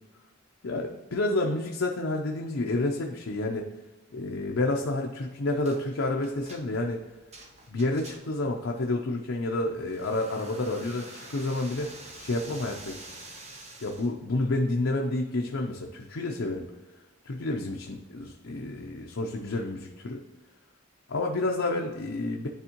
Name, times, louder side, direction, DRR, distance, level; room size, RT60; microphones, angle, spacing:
voice 1, 0.6-3.7 4.1-7.0 7.7-11.9 12.2-13.0 13.8-16.7 17.2-20.2 21.1-22.5, left 2 dB, 65° left, 1 dB, 0.6 m, -29 dB
sound 1, 5.6-5.8 6.2-8.5 9.9-14.1, right 2 dB, 30° right, 0.8 m, -47 dB
10.5 x 3.5 x 2.9 m, 1.2 s
head